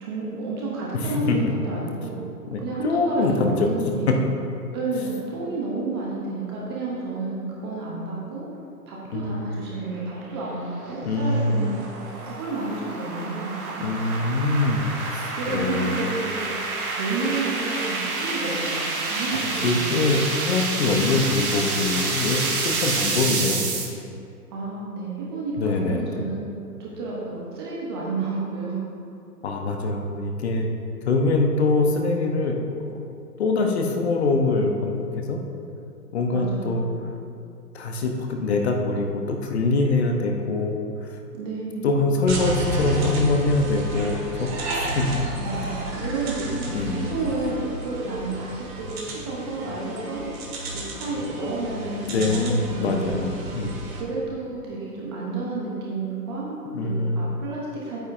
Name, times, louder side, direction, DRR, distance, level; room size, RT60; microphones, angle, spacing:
voice 1, 0.0-2.2 2.6-4.2 4.7-8.5 8.9-11.8 12.2-13.9 15.4-16.5 17.0-20.1 24.5-26.5 26.8-28.8 36.3-36.9 41.3-41.9 45.4-50.2 50.7-53.2 53.9-58.0, right 3 dB, 15° right, -5 dB, 0.7 m, -30 dB
voice 2, 2.5-3.7 9.1-9.5 11.0-11.7 13.8-16.0 19.6-23.6 25.6-26.2 29.4-30.7 31.1-32.6 32.9-33.0 33.4-35.4 36.1-36.8 37.7-41.2 41.8-45.2 46.7-47.1 52.1-53.7 56.7-57.4, left 3 dB, 40° left, 3 dB, 0.9 m, -24 dB
sound 1, 9.9-23.8, right 3 dB, 60° right, 1.7 m, -29 dB
sound 2, 42.3-54.0, right 1 dB, 40° right, 1.8 m, -31 dB
9.3 x 8.9 x 2.5 m, 2.5 s
hypercardioid pair, 140°, 48 cm